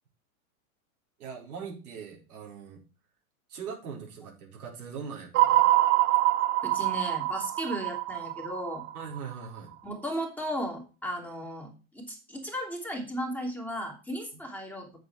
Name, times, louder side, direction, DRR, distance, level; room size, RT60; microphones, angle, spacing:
voice 1, 1.2-2.8 3.5-5.7 8.9-9.7, right 6 dB, 80° right, -1 dB, 4.6 m, -41 dB
sound 1, 5.3-9.6, right 15 dB, 30° right, 0.5 m, -25 dB
voice 2, 6.6-8.8 9.8-15.0, equal, 5° left, 0 dB, 3.0 m, -35 dB
7.8 x 7.8 x 4.7 m, 0.33 s
hypercardioid pair, 120°, 43 cm